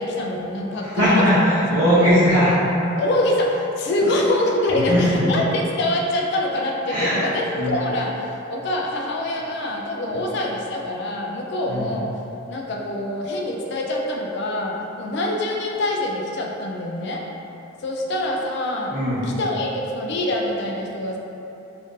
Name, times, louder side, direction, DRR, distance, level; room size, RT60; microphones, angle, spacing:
voice 1, 0.0-1.2 1.8-2.1 3.0-12.1 12.5-17.2 17.8-18.9 19.2-21.2, left 1 dB, 55° left, -1 dB, 0.3 m, -25 dB
voice 2, 0.8-2.6 4.0-4.1 4.7-5.2 6.9-7.2 7.6-7.8 10.1-10.2 11.7-11.9 18.9-19.3, equal, 55° right, -14 dB, 0.7 m, -19 dB
2.6 x 2.5 x 3.5 m, 2.9 s
head